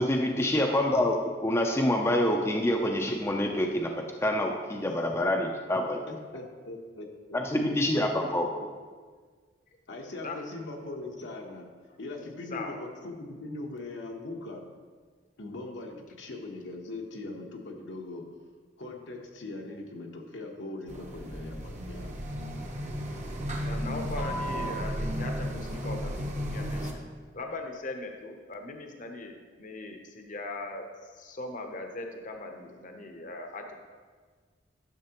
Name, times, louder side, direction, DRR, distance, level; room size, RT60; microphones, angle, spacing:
voice 1, 0.0-6.0 7.3-8.5, left 1 dB, 15° left, 2 dB, 0.4 m, -26 dB
voice 2, 6.1-7.7 8.0-8.1 9.9-11.7 12.0-14.6 15.4-18.3 18.8-22.1, left 2 dB, 80° left, 1 dB, 1.0 m, -40 dB
sound 1, 20.9-26.9, equal, 40° right, 0.8 m, -34 dB
voice 3, 23.6-26.9 27.3-33.8, left 2 dB, 45° left, 4 dB, 0.7 m, -40 dB
10.5 x 6.6 x 2.9 m, 1.6 s
head